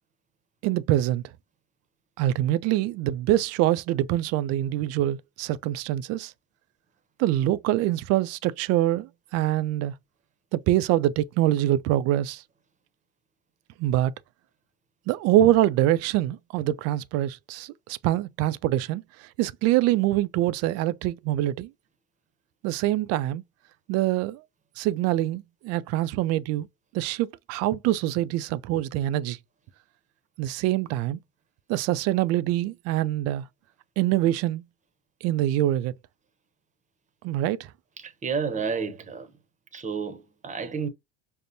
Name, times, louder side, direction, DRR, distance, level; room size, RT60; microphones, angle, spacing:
voice 1, 0.6-1.2 2.2-6.3 7.2-9.9 10.5-12.4 13.8-14.1 15.1-19.0 19.4-21.7 22.6-23.4 23.9-24.4 24.8-26.7 26.9-29.4 30.4-31.2 31.7-33.4 34.0-34.6 35.2-35.9 37.2-37.6, right 14 dB, 55° right, 0.4 m, -24 dB
voice 2, 38.0-39.3 39.7-40.9, right 5 dB, 25° right, 0.8 m, -31 dB
5.3 x 2.1 x 2.6 m
supercardioid pair, 105°, 29 cm